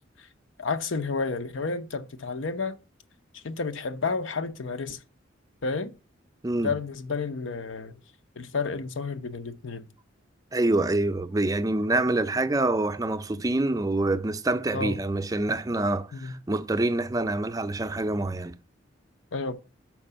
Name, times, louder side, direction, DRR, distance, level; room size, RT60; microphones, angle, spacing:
voice 1, 0.6-2.8 3.3-5.0 5.6-5.9 6.6-8.0 8.4-9.9 14.7-15.0 16.1-16.4 19.3-19.5, left 4 dB, 80° left, 0.7 m, -31 dB
voice 2, 10.5-18.5, right 2 dB, 20° right, 0.4 m, -26 dB
5.9 x 4.8 x 5.5 m
head